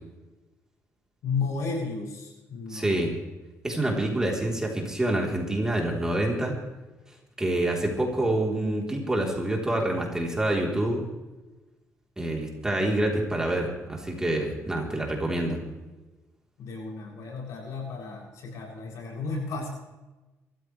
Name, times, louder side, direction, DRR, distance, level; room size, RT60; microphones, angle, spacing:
voice 1, 1.2-3.1 16.6-19.7, left 4 dB, 85° left, -2 dB, 7.3 m, -33 dB
voice 2, 2.7-3.1 3.6-6.5 7.4-11.0 12.2-15.6, right 1 dB, 10° right, -1 dB, 3.6 m, -27 dB
25.5 x 14.5 x 3.3 m, 1.1 s
cardioid pair, 135°, 5 cm